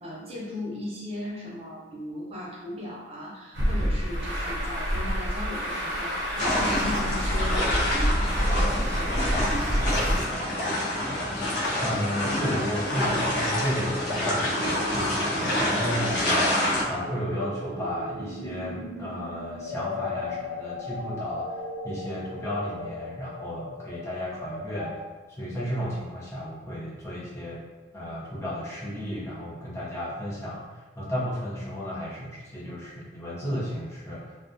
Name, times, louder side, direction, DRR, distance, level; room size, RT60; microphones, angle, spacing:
voice 1, 0.0-11.1, left 1 dB, 30° right, -5 dB, 0.6 m, -37 dB
Truck, 3.5-10.2, equal, 70° right, 0.8 m, -27 dB
sound 1, 6.4-16.8, left 1 dB, 60° left, 0.6 m, -27 dB
voice 2, 11.8-25.0 25.3-27.6 27.9-34.4, equal, 15° left, -8 dB, 0.6 m, -33 dB
sound 2, 13.1-25.0, left 2 dB, 80° left, 0.9 m, -38 dB
2.3 x 2.2 x 2.6 m, 1.2 s
head